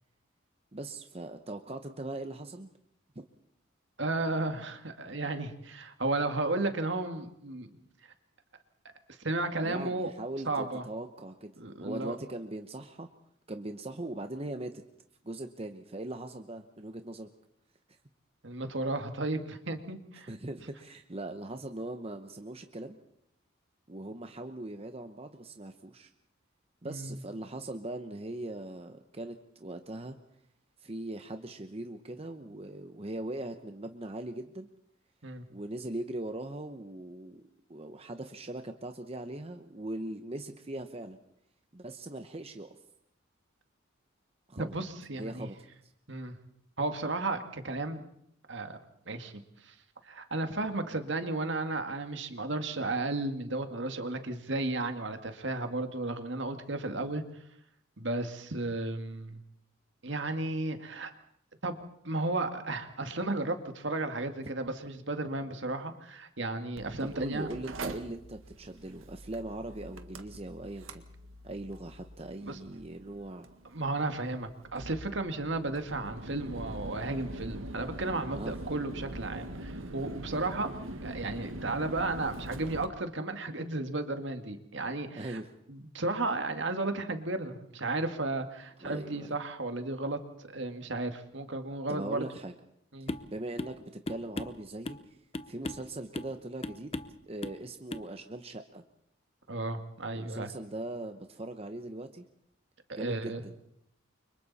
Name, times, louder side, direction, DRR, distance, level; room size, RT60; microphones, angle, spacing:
voice 1, 0.7-2.7 3.1-3.3 9.6-11.5 11.8-13.1 13.5-14.7 15.2-17.3 17.9-18.0 20.3-23.0 23.9-26.1 26.8-30.2 30.8-34.7 35.5-37.4 37.7-41.2 41.7-42.7 44.5-44.8 45.2-45.5 45.8-45.9 67.0-71.0 71.4-73.5 78.3-78.6 85.1-85.5 88.8-89.4 91.9-92.5 93.0-95.2 95.5-98.8 100.1-102.2 102.9-103.5, right 1 dB, 30° right, 7 dB, 0.9 m, -40 dB
voice 2, 4.0-7.7 9.1-10.1 10.5-10.8 11.6-12.2 18.4-20.3 26.8-27.2 35.2-35.4 44.6-45.5 46.1-46.4 46.8-48.0 48.5-48.8 49.1-49.3 49.6-49.7 50.0-57.2 58.0-59.4 60.0-61.1 61.6-61.8 62.0-67.5 72.4-72.6 73.7-80.7 81.0-85.4 85.7-92.2 92.9-93.1 99.5-100.5 102.9-103.4, right 2 dB, 60° right, 7 dB, 2.0 m, -34 dB
Mechanical fan, 66.8-82.9, right 1 dB, 85° right, 1.8 m, -43 dB
sound 1, 93.1-93.3 93.6-93.8 94.1-95.1 95.3-95.9 96.1-96.4 96.6-97.2 97.4-97.6 97.9-98.1, left 2 dB, 30° left, 0.9 m, -37 dB
29.5 x 25.0 x 4.2 m, 0.72 s
head